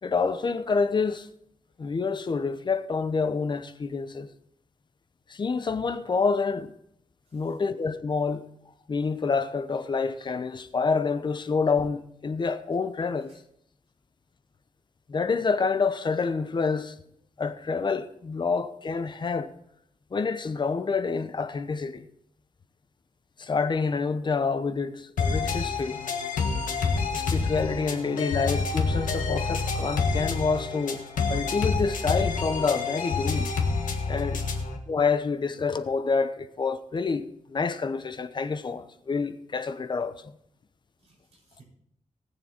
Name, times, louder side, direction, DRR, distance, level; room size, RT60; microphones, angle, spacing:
voice 1, 0.0-1.3 1.8-4.3 5.3-6.7 7.3-8.5 8.9-13.3 15.1-16.9 17.4-19.5 20.1-22.1 23.4-26.0 26.3-26.4 27.1-33.5 34.1-34.4 34.9-40.4, left 4 dB, 35° left, 0.7 m, -28 dB
sound 1, 25.2-34.8, left 4 dB, 90° left, 1.6 m, -28 dB
voice 2, 32.3-32.7 41.0-41.6, right 2 dB, 50° right, 4.9 m, -51 dB
19.0 x 7.1 x 4.4 m
wide cardioid pair, 150°, 13 cm